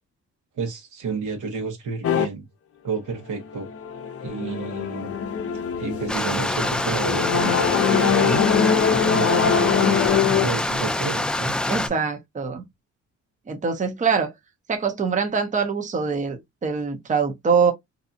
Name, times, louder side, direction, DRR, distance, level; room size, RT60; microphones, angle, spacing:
voice 1, 0.6-2.5 2.8-3.7 4.2-5.1 5.8-8.4 9.1-11.6, right 4 dB, 80° right, 1.1 m, -31 dB
sound 1, 2.0-2.2 3.4-10.5, left 7 dB, 50° left, 0.6 m, -23 dB
Stream, 6.1-11.9, left 1 dB, 5° left, 0.3 m, -25 dB
voice 2, 11.7-12.6 13.5-14.3 14.7-17.7, right 5 dB, 25° right, 0.7 m, -23 dB
2.7 x 2.3 x 2.6 m
cardioid pair, 90°, 30 cm